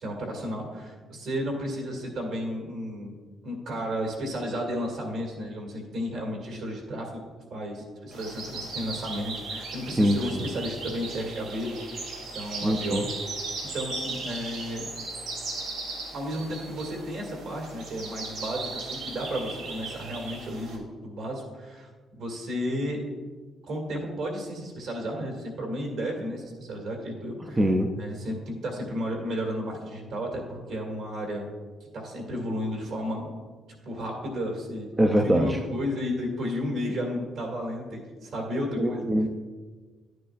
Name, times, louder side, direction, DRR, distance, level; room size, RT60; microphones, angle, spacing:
voice 1, 0.0-3.2 3.4-7.2 7.5-12.0 12.3-13.1 13.6-14.9 16.1-23.0 23.6-27.6 28.0-31.5 31.9-33.3 33.8-39.0, equal, 55° right, 0 dB, 2.0 m, -33 dB
sound 1, 8.1-20.8, right 3 dB, 85° right, 2.0 m, -37 dB
voice 2, 10.0-10.5 12.6-13.0 27.6-27.9 35.0-35.6 38.8-39.3, right 1 dB, 10° right, 3 dB, 0.4 m, -23 dB
11.0 x 9.3 x 2.4 m, 1.4 s
cardioid pair, 180°, 0 cm